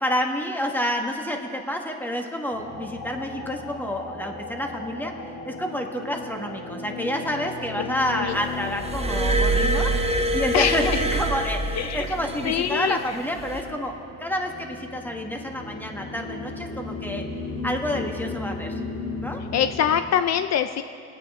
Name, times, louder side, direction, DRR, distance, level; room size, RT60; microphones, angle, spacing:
voice 1, 0.0-5.1 5.4-17.2 17.6-18.8 19.2-19.4, equal, 5° left, 2 dB, 1.5 m, -29 dB
sound 1, 2.5-20.0, left 3 dB, 80° left, 2.3 m, -36 dB
Glass, 8.8-12.4 13.4-13.6, right 2 dB, 20° right, 0.9 m, -24 dB
voice 2, 10.5-11.0 11.8-12.0 12.4-13.2 19.5-20.8, left 9 dB, 60° left, 10 dB, 0.5 m, -24 dB
22.5 x 9.1 x 3.7 m, 2.4 s
cardioid pair, 90°, 30 cm